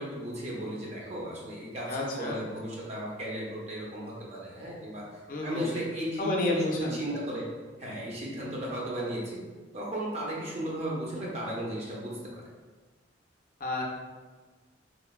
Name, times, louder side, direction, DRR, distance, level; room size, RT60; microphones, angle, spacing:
voice 1, 0.0-5.0 5.4-7.5 7.8-9.4 9.7-12.4, right 1 dB, 35° right, -5 dB, 0.6 m, -35 dB
voice 2, 1.9-2.4 5.3-5.7 6.2-7.0 13.6-13.8, left 2 dB, 45° left, -1 dB, 0.4 m, -30 dB
3.0 x 2.2 x 2.3 m, 1.3 s
head